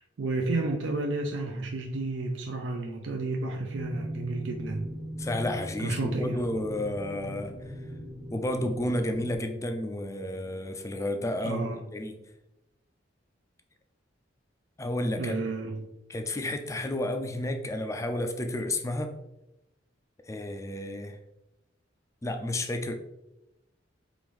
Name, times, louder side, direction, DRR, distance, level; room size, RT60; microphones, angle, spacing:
voice 1, 0.0-4.9 5.8-6.4 11.4-11.8 15.2-15.9, right 2 dB, 75° right, 1 dB, 0.5 m, -31 dB
sound 1, 3.7-9.4, equal, 20° right, 0.7 m, -39 dB
voice 2, 5.2-7.6 8.3-12.2 14.8-15.5 16.1-19.2 20.3-21.2 22.2-23.0, left 1 dB, 15° left, 6 dB, 0.3 m, -31 dB
4.7 x 2.6 x 3.5 m, 0.89 s
head